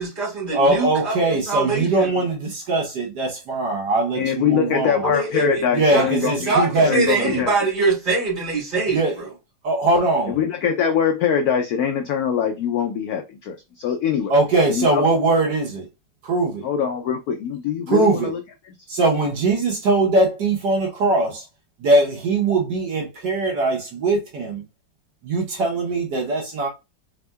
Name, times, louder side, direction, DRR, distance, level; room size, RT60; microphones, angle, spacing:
voice 1, 0.0-2.1 5.0-5.6 5.9-6.1 6.5-9.0, right 3 dB, 35° right, 2.9 m, -23 dB
voice 2, 0.5-5.0 5.7-7.4 8.9-9.3 9.6-10.4 14.3-15.9 16.2-16.7 17.9-18.3 18.9-21.4 21.8-24.6 25.2-26.7, right 2 dB, 65° right, 1.5 m, -21 dB
voice 3, 4.2-6.6 6.8-7.5 10.3-14.3 14.7-15.0 16.6-18.4, left 7 dB, 75° left, 0.8 m, -23 dB
4.2 x 3.6 x 2.2 m
omnidirectional pair, 2.1 m